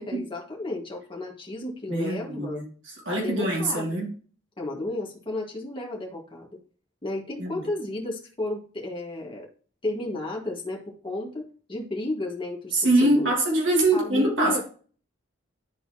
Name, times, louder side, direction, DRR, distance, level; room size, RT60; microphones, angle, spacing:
voice 1, 0.0-2.6 3.1-4.1 4.6-6.5 7.0-9.5 9.8-13.3 13.9-14.6, left 2 dB, 25° left, -2 dB, 1.8 m, -33 dB
voice 2, 1.9-2.6 3.1-4.1 7.4-7.7 12.7-14.6, right 1 dB, 65° right, -3 dB, 2.5 m, -23 dB
12.0 x 4.2 x 2.9 m, 0.42 s
head